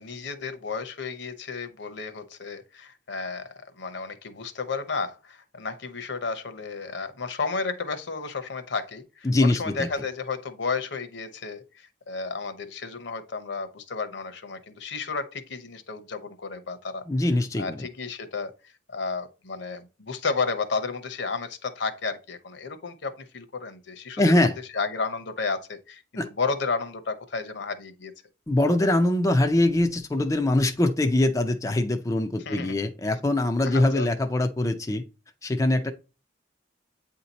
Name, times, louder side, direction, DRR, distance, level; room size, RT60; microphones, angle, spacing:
voice 1, 0.0-17.0 17.6-18.5 18.9-24.5 24.7-28.1 32.5-32.8 33.6-34.1, left 4 dB, 65° left, 0.9 m, -32 dB
voice 2, 9.2-9.9 17.1-17.9 24.2-24.6 26.2-26.3 28.5-35.0 35.4-35.9, left 1 dB, 15° left, 0.5 m, -23 dB
8.5 x 2.9 x 4.1 m
head